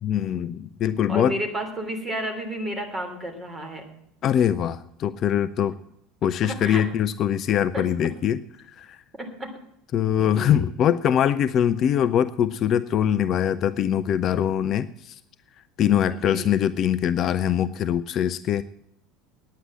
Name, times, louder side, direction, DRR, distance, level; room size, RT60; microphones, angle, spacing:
voice 1, 0.0-1.3 4.2-5.7 6.2-8.4 8.8-9.0 9.9-15.1 15.8-18.6, left 9 dB, 45° left, 13 dB, 0.4 m, -23 dB
voice 2, 1.1-3.9 6.4-6.8 7.7-7.8 9.2-9.5 10.2-10.6 16.1-16.6, right 1 dB, 20° right, 4 dB, 3.1 m, -31 dB
9.5 x 9.4 x 7.7 m, 0.75 s
figure-of-eight pair, 70°, 0 cm